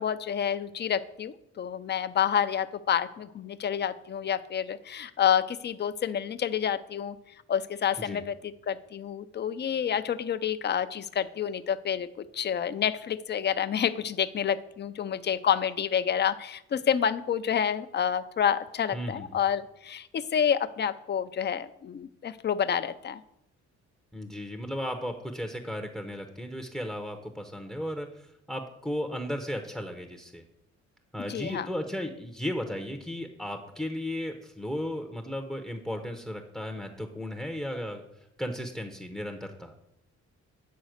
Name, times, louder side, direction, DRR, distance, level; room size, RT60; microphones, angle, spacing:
voice 1, 0.0-7.2 7.5-12.1 12.3-23.2 31.3-31.7, left 8 dB, 35° left, 11 dB, 0.5 m, -28 dB
voice 2, 18.9-19.3 24.1-30.4 31.1-38.0 38.4-39.7, equal, ahead, 5 dB, 0.7 m, -35 dB
9.3 x 4.1 x 6.4 m, 0.82 s
cardioid pair, 90°, 30 cm